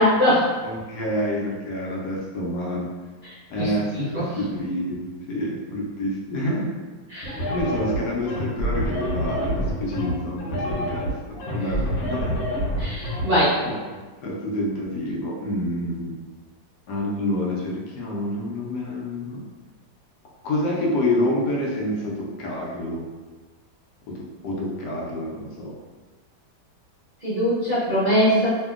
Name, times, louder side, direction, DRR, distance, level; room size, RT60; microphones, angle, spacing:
voice 1, 0.0-0.5 3.6-3.7 4.0-4.2 7.1-7.5 12.8-13.6 27.2-28.5, equal, 50° right, -12 dB, 0.6 m, -21 dB
voice 2, 0.6-2.9 3.5-6.7 7.5-12.4 13.6-13.8 14.2-16.2 16.9-19.4 20.4-23.1 24.1-25.7, left 1 dB, 70° left, -3 dB, 1.1 m, -28 dB
sound 1, 7.2-13.2, equal, 90° left, 1.5 m, -27 dB
2.8 x 2.7 x 2.3 m, 1.3 s
omnidirectional pair, 2.1 m